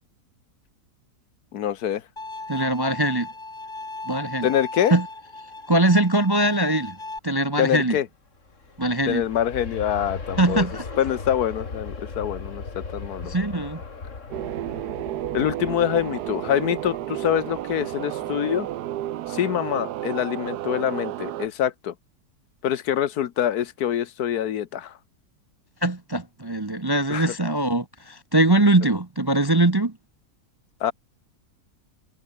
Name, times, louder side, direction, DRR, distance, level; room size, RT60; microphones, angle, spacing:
voice 1, 1.5-2.0 4.4-4.9 7.6-8.1 9.1-10.7 11.0-13.3 15.3-18.7 19.3-21.9 22.6-25.0 27.1-27.3 30.8-30.9, left 10 dB, 70° left, 1.4 m, -25 dB
Bowed string instrument, 2.2-7.2, left 2 dB, 30° left, 3.0 m, -37 dB
voice 2, 2.5-3.3 4.1-4.5 4.9-5.0 5.7-7.0 7.2-8.0 8.8-9.2 10.4-10.8 13.2-13.8 25.8-29.9, right 1 dB, 20° right, 0.7 m, -21 dB
Aircraft, 8.3-19.1 19.5-19.6, left 4 dB, 50° left, 2.7 m, -38 dB
sound 1, 14.3-21.5, right 13 dB, 80° right, 1.3 m, -32 dB
omnidirectional pair, 1.7 m